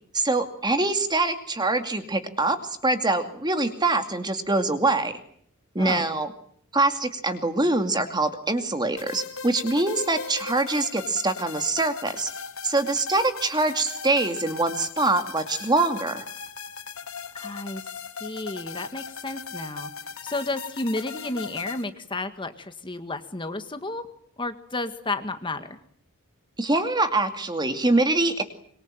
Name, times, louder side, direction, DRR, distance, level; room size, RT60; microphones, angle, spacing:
voice 1, 0.1-2.6 2.8-5.1 5.7-6.3 6.7-12.3 12.6-16.2 26.6-28.4, right 2 dB, 20° right, 8 dB, 2.4 m, -24 dB
sound 1, 9.0-21.8, left 5 dB, 75° left, 2.4 m, -38 dB
voice 2, 17.3-17.9 18.2-19.9 20.2-24.0 24.4-25.8, left 2 dB, 25° left, 8 dB, 1.7 m, -32 dB
25.5 x 24.0 x 9.1 m, 0.64 s
head